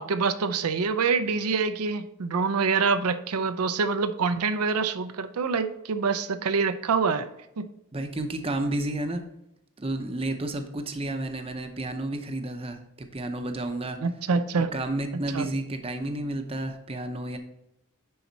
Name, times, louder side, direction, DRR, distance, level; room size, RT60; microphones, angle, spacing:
voice 1, 0.0-7.3 7.6-7.7 14.0-14.7 15.3-15.5, right 5 dB, 85° right, 10 dB, 0.6 m, -26 dB
voice 2, 7.9-9.2 9.8-14.0 14.6-17.4, right 1 dB, 25° right, 6 dB, 0.6 m, -31 dB
10.5 x 4.2 x 4.0 m, 0.82 s
head